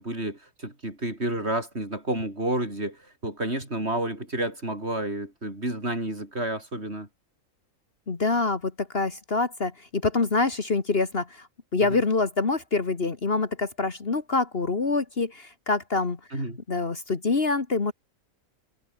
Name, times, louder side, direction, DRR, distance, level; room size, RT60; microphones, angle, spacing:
voice 1, 0.0-7.1 11.9-12.0 16.3-16.6, right 1 dB, 45° right, 6.6 m, -30 dB
voice 2, 8.1-11.5 11.7-16.2 16.7-17.9, left 3 dB, 45° left, 1.9 m, -26 dB
omnidirectional pair, 1.5 m